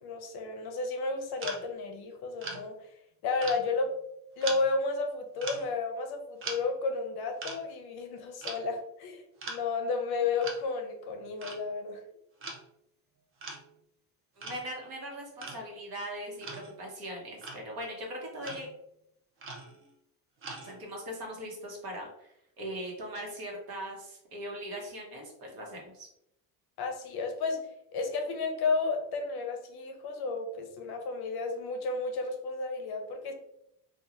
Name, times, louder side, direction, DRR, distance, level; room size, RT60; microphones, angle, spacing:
voice 1, 0.0-2.7 3.2-3.9 4.4-12.0 26.8-27.6 27.9-33.3, left 3 dB, 60° left, 4 dB, 0.6 m, -32 dB
sound 1, 1.4-1.7 2.4-2.6 3.4-4.0 4.4-4.7 5.4-5.7 6.4-6.6 7.4-7.6 8.4-8.7 9.4-9.6 10.4-10.6 11.4-11.7 12.4-12.7 13.4-13.8 14.4-14.6 15.4-15.6 16.4-16.8 17.4-17.7 18.4-18.8 19.4-19.9 20.4-20.9, right 3 dB, 30° right, 0.4 m, -41 dB
voice 2, 14.4-18.7 20.6-26.1, equal, 55° right, 0 dB, 1.0 m, -40 dB
2.9 x 2.3 x 2.4 m, 0.78 s
cardioid pair, 145°, 44 cm